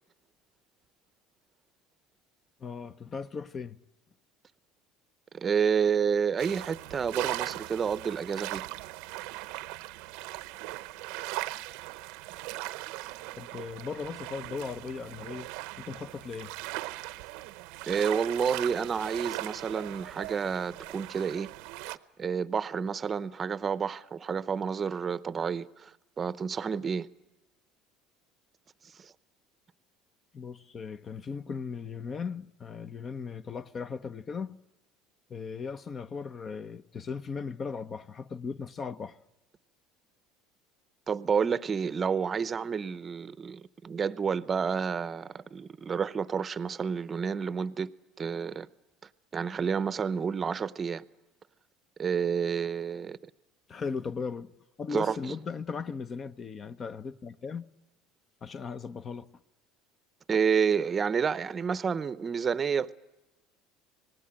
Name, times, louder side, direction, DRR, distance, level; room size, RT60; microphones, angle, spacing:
voice 1, 2.6-3.8 13.4-15.5 15.8-16.5 30.3-34.6 35.3-39.2 53.7-54.5 54.8-57.7 58.4-59.3, left 5 dB, 30° left, 0.9 m, -37 dB
voice 2, 5.3-8.6 17.9-21.5 22.2-27.1 29.0-29.1 41.1-47.9 48.2-48.7 49.3-51.0 52.0-53.2 54.9-55.2 60.3-62.9, right 6 dB, 30° right, 0.8 m, -29 dB
sound 1, 6.4-22.0, right 19 dB, 75° right, 0.8 m, -39 dB
25.0 x 19.0 x 9.0 m
supercardioid pair, 115°, 0 cm